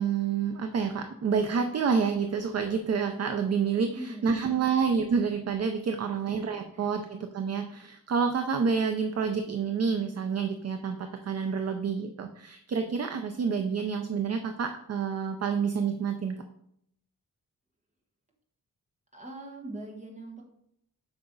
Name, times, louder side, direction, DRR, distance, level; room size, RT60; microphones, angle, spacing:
voice 1, 0.0-16.4, right 6 dB, 45° right, 7 dB, 0.5 m, -28 dB
voice 2, 3.7-4.6 6.7-6.9 19.1-20.4, right 1 dB, 20° right, 0 dB, 1.5 m, -42 dB
8.0 x 5.7 x 3.8 m, 0.74 s
wide cardioid pair, 180°, 36 cm